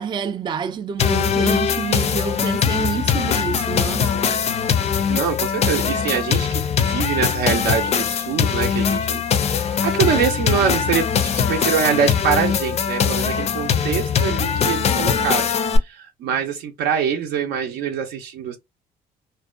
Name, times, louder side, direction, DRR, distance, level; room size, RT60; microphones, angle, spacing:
voice 1, 0.0-4.3, right 6 dB, 25° right, 0.3 m, -28 dB
sound 1, 1.0-15.8, left 7 dB, 40° left, 0.4 m, -21 dB
voice 2, 5.1-9.2 9.5-15.5 15.9-18.6, right 7 dB, 75° right, 0.6 m, -24 dB
2.6 x 2.1 x 2.3 m
cardioid pair, 110°, 17 cm